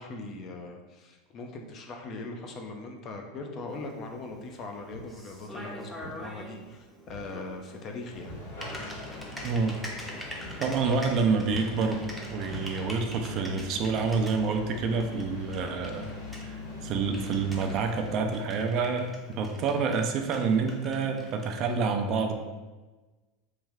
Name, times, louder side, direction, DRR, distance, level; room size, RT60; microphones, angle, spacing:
voice 1, 0.0-8.4, left 2 dB, 40° left, 3 dB, 0.5 m, -40 dB
Typing, 3.7-21.8, equal, 5° left, 0.6 m, -46 dB
Walk footsteps, 4.9-5.2 6.0-6.2 7.1-7.3 7.6-9.1 9.3-9.5 9.9-10.1 10.4-10.6 10.9-11.2 11.5-11.7 12.4-13.1, left 1 dB, 80° right, 0.9 m, -45 dB
sound 1, 8.1-18.2, left 3 dB, 75° left, 1.5 m, -41 dB
voice 2, 9.4-9.8 10.6-16.1 16.4-22.3, right 5 dB, 50° right, 5 dB, 0.4 m, -28 dB
3.2 x 2.2 x 3.4 m, 1.2 s
hypercardioid pair, 100°, 0 cm